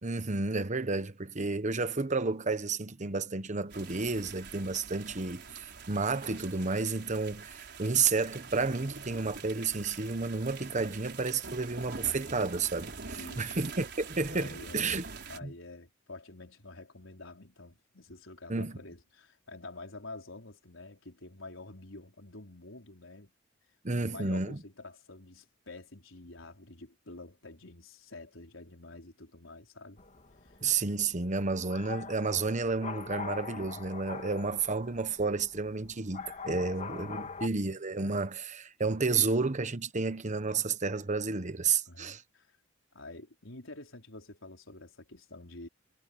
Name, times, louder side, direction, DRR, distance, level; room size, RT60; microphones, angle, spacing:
voice 1, 0.0-5.4 5.9-15.1 15.4-15.5 18.5-18.8 23.8-24.6 30.6-42.2, right 4 dB, 40° right, 1.1 m, -31 dB
sound 1, 3.7-15.4, right 5 dB, 60° right, 4.9 m, -45 dB
voice 2, 13.1-13.6 14.3-14.9 15.3-23.3 23.9-30.0 30.4-30.6 36.6-37.5 41.9-42.6 42.9-45.7, left 2 dB, 80° left, 4.7 m, -48 dB
sound 2, 30.0-37.5, left 5 dB, 40° left, 2.7 m, -43 dB
head